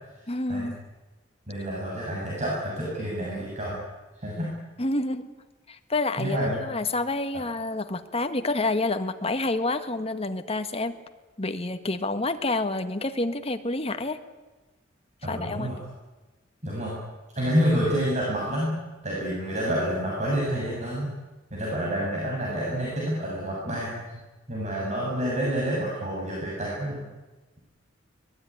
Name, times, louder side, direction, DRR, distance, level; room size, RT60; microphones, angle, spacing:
voice 1, 0.3-0.8 4.8-5.3 5.7-11.0 11.4-14.2 15.3-15.7, left 2 dB, 30° left, 8 dB, 1.6 m, -28 dB
voice 2, 1.5-3.8 4.2-4.5 6.2-6.6 15.2-15.8 16.6-17.0 17.4-18.8 19.0-21.1 21.5-24.0 24.5-27.0, equal, 40° right, -4 dB, 7.4 m, -28 dB
23.5 x 20.5 x 10.0 m, 1.2 s
head